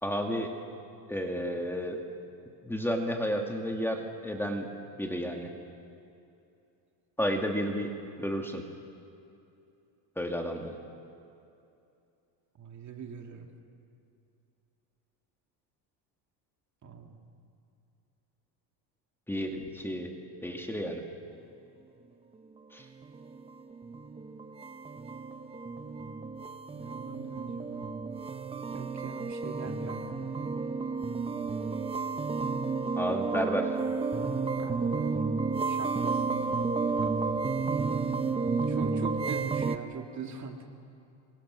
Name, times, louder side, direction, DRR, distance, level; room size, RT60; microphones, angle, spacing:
voice 1, 0.0-0.5 1.1-2.0 2.6-4.7 5.0-5.5 7.2-7.9 8.2-8.6 10.2-10.8 19.3-20.1 20.4-21.0 22.7-22.9 33.0-33.8, equal, 5° left, 2 dB, 2.1 m, -31 dB
voice 2, 12.6-13.5 16.8-17.2 26.7-27.9 28.7-30.3 34.6-35.1 35.7-37.2 38.7-40.7, right 5 dB, 40° right, 3 dB, 2.3 m, -42 dB
sound 1, 22.8-39.8, right 4 dB, 15° right, 0.6 m, -32 dB
27.5 x 24.0 x 6.3 m, 2.7 s
cardioid pair, 125°, 46 cm